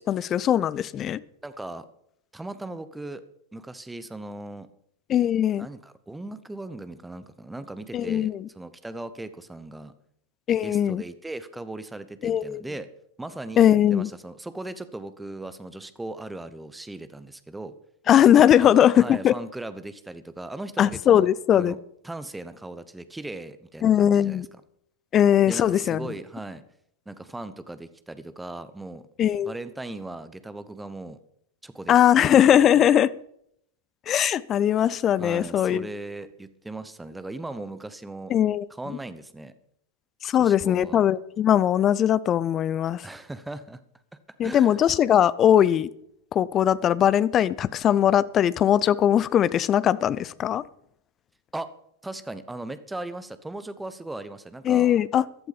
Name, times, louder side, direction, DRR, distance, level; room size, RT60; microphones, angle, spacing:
voice 1, 0.1-1.2 5.1-5.7 7.9-8.5 10.5-11.0 12.2-12.6 13.6-14.1 18.1-19.3 20.8-21.7 23.8-24.5 25.1-26.1 29.2-29.5 31.9-33.1 34.1-35.9 38.3-39.0 40.2-43.0 44.4-45.9 46.3-50.6 54.7-55.5, left 10 dB, 30° left, 0.5 m, -20 dB
voice 2, 1.4-1.9 2.3-3.2 3.5-4.7 5.6-9.9 10.6-12.9 13.2-17.8 18.6-21.8 22.0-24.5 25.5-26.6 27.1-29.0 29.4-31.2 31.6-32.8 35.2-38.3 38.7-39.5 40.4-41.1 43.0-43.8 44.1-44.8 51.5-51.7 52.0-55.0, right 2 dB, 5° right, 1.0 m, -38 dB
14.5 x 12.0 x 5.2 m
figure-of-eight pair, 90°, 0 cm